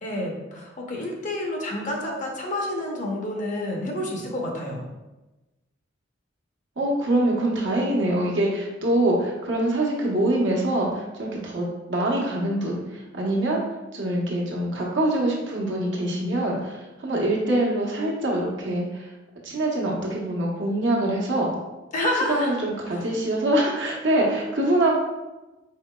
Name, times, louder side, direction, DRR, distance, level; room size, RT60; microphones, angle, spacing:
voice 1, 0.0-4.8 21.9-22.5 22.9-23.0, left 1 dB, 40° left, -1 dB, 0.7 m, -29 dB
voice 2, 6.8-13.6 13.9-19.1 19.4-21.5 22.3-25.0, right 1 dB, 65° right, -3 dB, 1.0 m, -24 dB
4.7 x 4.0 x 2.2 m, 1.1 s
head